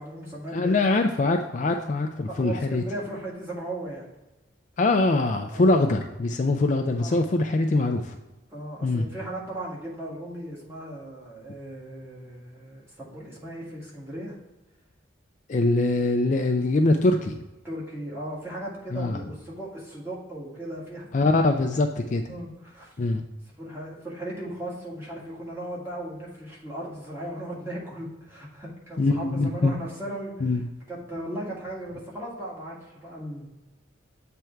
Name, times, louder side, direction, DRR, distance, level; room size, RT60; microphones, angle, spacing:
voice 1, 0.0-0.8 2.3-4.1 5.5-5.7 7.0-7.1 8.5-14.4 17.6-21.4 21.7-21.8 22.3-22.9 23.6-30.6 30.9-33.5, right 1 dB, 15° right, -5 dB, 1.7 m, -37 dB
voice 2, 0.5-2.8 4.8-8.2 8.8-9.1 15.5-17.3 18.9-19.2 21.1-22.3 23.0-23.2 29.0-29.8 30.4-30.6, left 2 dB, 40° left, 5 dB, 0.4 m, -23 dB
7.7 x 3.5 x 4.4 m, 1.0 s
head